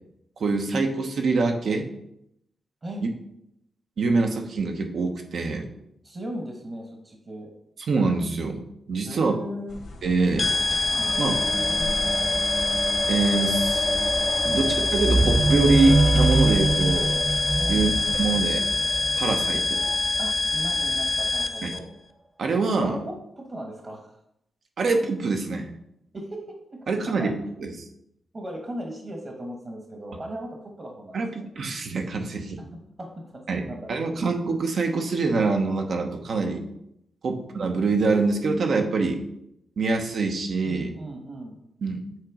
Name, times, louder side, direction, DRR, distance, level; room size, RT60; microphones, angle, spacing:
voice 1, 0.4-1.9 3.0-3.1 4.0-5.7 7.9-8.6 8.9-9.4 10.0-11.4 13.1-13.9 14.4-17.1 17.7-17.9 18.2-18.6 19.2-19.8 21.6-21.7 22.4-23.0 24.8-25.7 26.9-27.3 27.6-27.7 31.1-32.6 33.5-36.6 37.2-39.2 39.8-40.9 41.8-42.0, right 3 dB, 70° right, 4 dB, 0.9 m, -24 dB
voice 2, 6.0-7.5 9.0-9.8 17.6-17.9 20.2-21.9 22.8-24.2 26.1-26.8 27.0-27.3 27.6-27.7 28.3-31.4 32.7-33.9 40.6-41.6, right 1 dB, 40° right, 1 dB, 1.3 m, -37 dB
sound 1, 9.7-18.3, left 3 dB, 70° left, 1.6 m, -39 dB
sound 2, 10.4-21.8, left 3 dB, 40° left, 0.6 m, -25 dB
sound 3, 10.4-20.0 20.8-20.9, right 2 dB, 25° right, 1.0 m, -26 dB
7.5 x 3.0 x 4.9 m, 0.78 s
cardioid pair, 70°, 0 cm